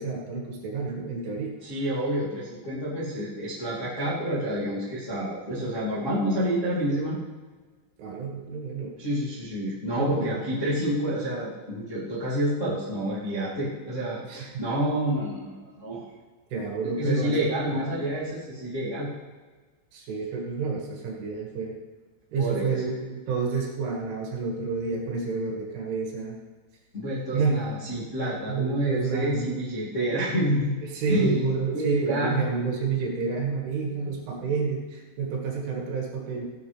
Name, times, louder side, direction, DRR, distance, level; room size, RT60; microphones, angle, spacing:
voice 1, 0.0-1.6 8.0-8.9 10.0-10.5 14.3-14.7 16.5-17.4 17.7-17.8 19.9-21.8 22.3-26.4 27.3-27.7 28.5-29.5 30.8-36.4, right 5 dB, 80° right, -1 dB, 4.4 m, -29 dB
voice 2, 1.6-7.2 9.0-16.0 17.0-19.1 22.4-22.8 26.9-30.7 31.1-31.5 31.7-32.4, equal, 25° left, -10 dB, 1.8 m, -28 dB
16.5 x 10.5 x 3.4 m, 1.4 s
omnidirectional pair, 5.6 m